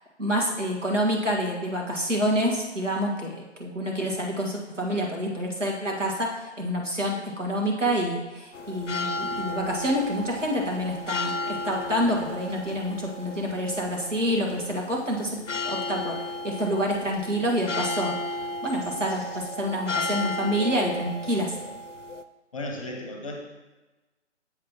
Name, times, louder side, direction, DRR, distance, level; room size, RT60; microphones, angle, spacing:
voice 1, 0.2-15.4 15.6-18.1 18.6-21.5, equal, 85° right, -1 dB, 1.7 m, -27 dB
sound 1, 8.5-22.2, left 2 dB, 85° left, 0.5 m, -34 dB
voice 2, 22.5-23.4, left 1 dB, 30° left, 2 dB, 0.7 m, -34 dB
7.5 x 6.3 x 3.0 m, 1.2 s
figure-of-eight pair, 140°, 36 cm